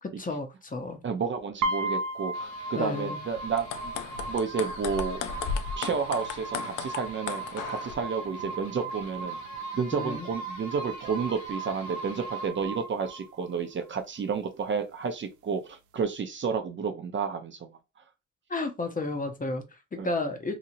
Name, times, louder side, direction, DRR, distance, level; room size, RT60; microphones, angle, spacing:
voice 1, 0.0-1.0 2.8-3.2 9.9-10.3 18.5-20.6, left 2 dB, 25° left, 0.8 m, -32 dB
voice 2, 1.0-3.9 4.3-5.3 5.8-9.4 9.7-17.7 20.0-20.1, right 5 dB, 40° right, 0.6 m, -31 dB
sound 1, 1.6-13.6, right 3 dB, 85° right, 0.5 m, -36 dB
sound 2, 2.3-12.5, left 6 dB, 65° left, 0.9 m, -49 dB
sound 3, 3.5-8.0, left 7 dB, 90° left, 0.5 m, -35 dB
2.9 x 2.7 x 2.5 m
cardioid pair, 90°, 30 cm